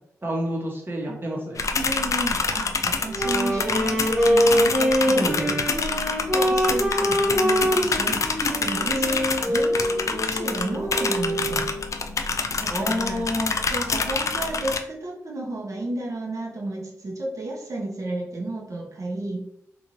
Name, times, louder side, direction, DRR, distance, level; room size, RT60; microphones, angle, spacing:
voice 1, 0.2-1.7 5.1-5.5 12.7-13.5, equal, 35° right, -2 dB, 1.1 m, -28 dB
sound 1, 1.6-14.8, left 4 dB, 55° left, 0.3 m, -27 dB
voice 2, 1.7-5.6 6.3-11.7 12.6-13.2 13.7-19.4, right 2 dB, 55° right, -1 dB, 0.9 m, -33 dB
Wind instrument woodwind instrument, 3.1-11.7, equal, 15° right, 1.4 m, -24 dB
2.7 x 2.6 x 2.9 m, 0.79 s
supercardioid pair, 40°, 6 cm